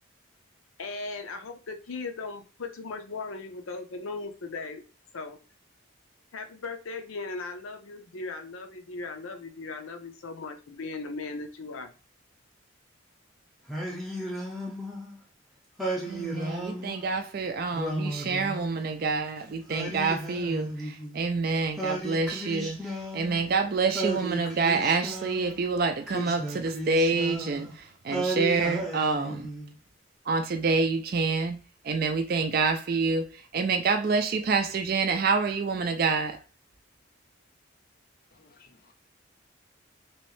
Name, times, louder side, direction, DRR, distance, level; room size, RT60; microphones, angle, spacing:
voice 1, 0.8-4.8 5.1-5.4 6.3-11.9, left 3 dB, 85° left, 0.6 m, -38 dB
Singing, 13.7-15.2 15.8-17.1 17.7-19.0 19.7-21.2 21.8-23.5 23.9-25.6 26.1-27.7 28.1-29.7, right 1 dB, ahead, 0.7 m, -34 dB
voice 2, 16.1-29.5 30.3-31.6 31.8-36.4, right 4 dB, 45° right, 0.4 m, -27 dB
voice 3, 38.3-38.9, left 4 dB, 45° left, 0.5 m, -59 dB
3.1 x 3.0 x 3.1 m
head